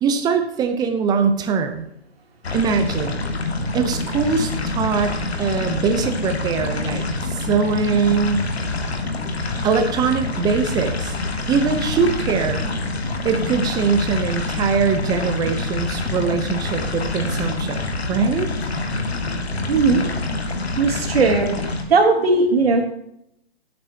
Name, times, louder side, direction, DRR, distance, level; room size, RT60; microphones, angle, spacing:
voice 1, 0.0-1.8 2.5-3.2 3.7-8.5 9.6-11.1 11.5-12.6 13.2-18.5, right 5 dB, 10° right, 7 dB, 0.7 m, -22 dB
sound 1, 2.4-21.8, left 2 dB, 75° left, 2.1 m, -26 dB
voice 2, 19.7-20.0 20.8-22.8, right 3 dB, 65° right, 1 dB, 3.1 m, -18 dB
16.0 x 8.6 x 2.9 m, 0.77 s
figure-of-eight pair, 130°, 32 cm